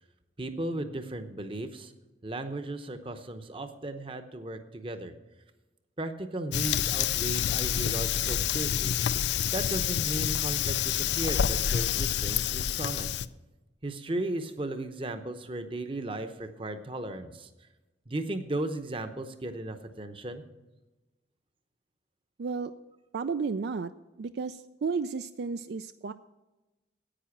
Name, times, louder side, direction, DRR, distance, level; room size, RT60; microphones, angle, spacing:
voice 1, 0.4-1.9 2.2-5.1 6.0-9.0 9.5-13.1 13.8-17.5 18.1-20.4, right 1 dB, 30° right, 8 dB, 0.8 m, -36 dB
Fire, 6.5-13.3, left 9 dB, 70° left, 0.4 m, -28 dB
voice 2, 22.4-22.7 23.1-23.9 24.2-26.1, right 5 dB, 60° right, 11 dB, 0.4 m, -32 dB
10.0 x 9.0 x 5.9 m, 1.1 s
head